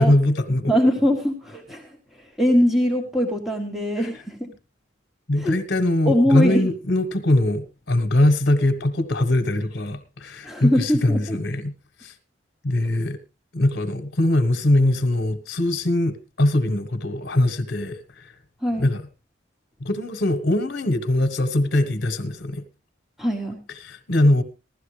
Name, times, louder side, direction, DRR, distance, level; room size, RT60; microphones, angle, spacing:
voice 1, 0.0-0.7 4.0-4.1 5.3-11.7 12.0-12.1 12.6-13.2 13.5-18.3 18.8-19.0 19.8-22.6 23.7-24.4, left 1 dB, 60° left, 1.4 m, -21 dB
voice 2, 0.7-1.8 2.4-4.5 5.4-5.5 6.0-6.7 10.4-11.4 18.6-18.9 23.2-23.6, equal, ahead, 1.4 m, -21 dB
16.0 x 12.5 x 3.3 m
head